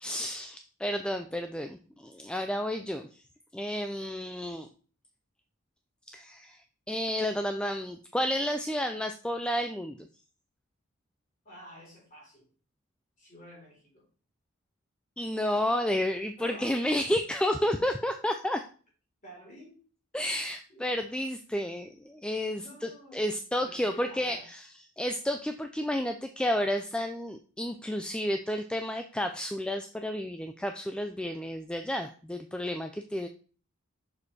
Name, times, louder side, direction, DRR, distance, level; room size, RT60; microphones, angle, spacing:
voice 1, 0.0-3.2 3.5-4.7 6.1-10.1 15.2-18.6 20.1-24.6 25.0-33.3, left 1 dB, 5° left, 6 dB, 0.3 m, -31 dB
voice 2, 11.4-12.5 13.2-14.1 16.4-16.9 19.2-19.8 20.7-20.9 22.5-24.5, equal, 35° left, -3 dB, 4.1 m, -50 dB
6.4 x 5.2 x 4.1 m, 0.40 s
head